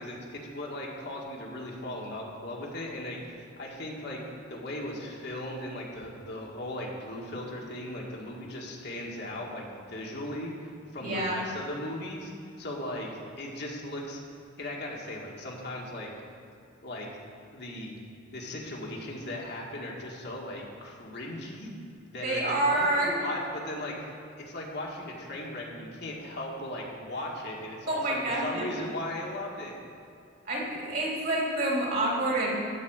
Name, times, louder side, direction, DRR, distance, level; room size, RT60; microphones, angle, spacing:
voice 1, 0.0-4.2 4.5-12.3 12.6-14.2 14.6-16.1 16.8-17.1 17.5-18.0 18.3-21.7 22.1-29.8, left 1 dB, 55° left, -2 dB, 1.8 m, -37 dB
voice 2, 11.0-11.4 22.2-23.1 27.9-28.7 30.5-32.5, right 2 dB, 50° right, -3 dB, 2.8 m, -28 dB
12.5 x 4.9 x 8.1 m, 2.5 s
head